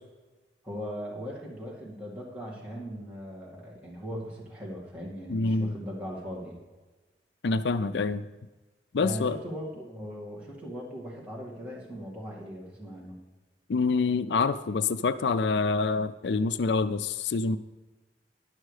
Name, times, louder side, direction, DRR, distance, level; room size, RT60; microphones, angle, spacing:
voice 1, 0.6-6.6 9.0-13.2, equal, 10° right, -6 dB, 2.2 m, -39 dB
voice 2, 5.3-5.7 7.4-8.2 8.9-9.4 13.7-17.6, left 4 dB, 80° left, 13 dB, 0.4 m, -26 dB
11.5 x 6.4 x 4.9 m, 1.2 s
head